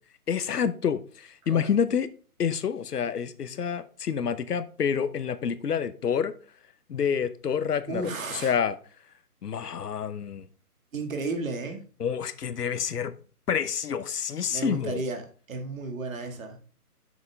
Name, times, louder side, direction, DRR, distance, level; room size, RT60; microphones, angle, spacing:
voice 1, 0.3-2.1 2.4-6.3 6.9-8.8 9.4-10.5 12.0-13.1 13.5-15.0, left 7 dB, 80° left, 0.9 m, -28 dB
voice 2, 7.9-8.6 10.9-11.8 14.5-15.2 15.5-16.6, right 3 dB, 55° right, 2.0 m, -33 dB
7.2 x 6.2 x 3.5 m
hypercardioid pair, 165°, 47 cm